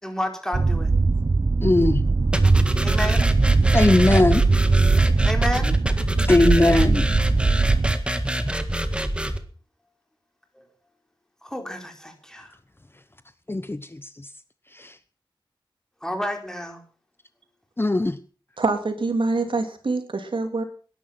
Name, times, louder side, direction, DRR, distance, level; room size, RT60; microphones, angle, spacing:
voice 1, 0.0-0.9 2.8-3.3 5.2-5.8 10.5-10.7 11.4-12.5 16.0-16.8, equal, 5° left, 4 dB, 4.4 m, -30 dB
sound 1, 0.5-7.9, right 3 dB, 40° right, 0.7 m, -20 dB
voice 2, 1.6-2.0 3.7-4.4 6.2-7.1 13.5-14.3 14.7-15.0 17.8-18.2, left 2 dB, 25° left, 12 dB, 0.9 m, -20 dB
sound 2, 2.3-9.4, right 1 dB, 10° right, 1.9 m, -26 dB
voice 3, 18.6-20.6, right 3 dB, 70° right, 6 dB, 2.9 m, -25 dB
19.0 x 11.0 x 5.9 m, 0.42 s
wide cardioid pair, 75°, 9 cm